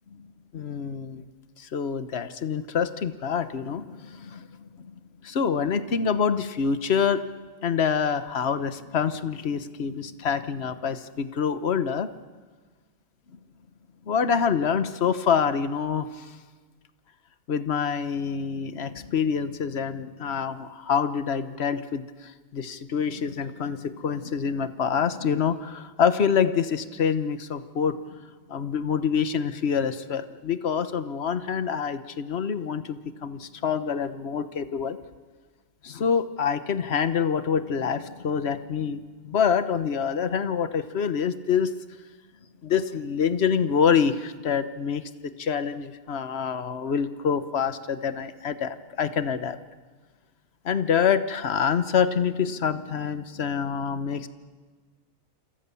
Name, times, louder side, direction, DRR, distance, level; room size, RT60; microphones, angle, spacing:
voice 1, 0.5-1.2 1.6-4.5 4.8-4.9 5.2-7.2 7.6-12.1 14.1-16.3 17.5-28.0 28.5-35.0 35.8-39.0 39.2-41.7 42.6-45.0 45.4-49.6 50.6-54.3, left 7 dB, 55° left, 11 dB, 1.3 m, -26 dB
28.5 x 27.0 x 7.1 m, 1.4 s
omnidirectional pair, 1.4 m